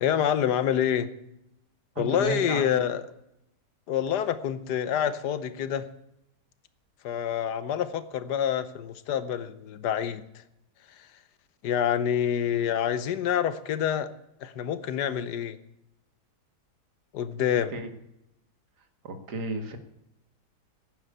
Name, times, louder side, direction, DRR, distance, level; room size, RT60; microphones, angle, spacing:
voice 1, 0.0-1.1 2.0-3.1 3.9-5.9 7.0-10.4 10.9-11.1 11.6-14.1 14.4-15.6 17.1-17.7, left 9 dB, 80° left, 14 dB, 1.5 m, -27 dB
voice 2, 2.0-2.8 17.7-17.9 19.0-19.8, right 3 dB, 75° right, 8 dB, 2.1 m, -33 dB
10.5 x 9.6 x 9.2 m, 0.83 s
omnidirectional pair, 1.8 m